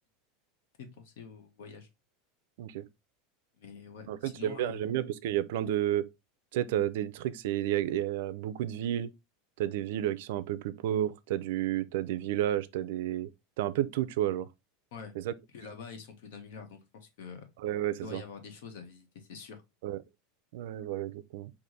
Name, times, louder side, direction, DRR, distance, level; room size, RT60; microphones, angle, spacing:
voice 1, 0.8-1.9 3.6-4.9 14.9-15.1 15.5-17.5 18.0-19.6, left 5 dB, 70° left, 1.3 m, -46 dB
voice 2, 4.1-6.1 6.5-9.1 9.6-13.3 13.6-14.5 15.2-15.3 17.6-18.2 19.8-20.0 20.5-21.5, right 12 dB, 65° right, 0.5 m, -31 dB
4.9 x 2.6 x 3.9 m
supercardioid pair, 170°, 0 cm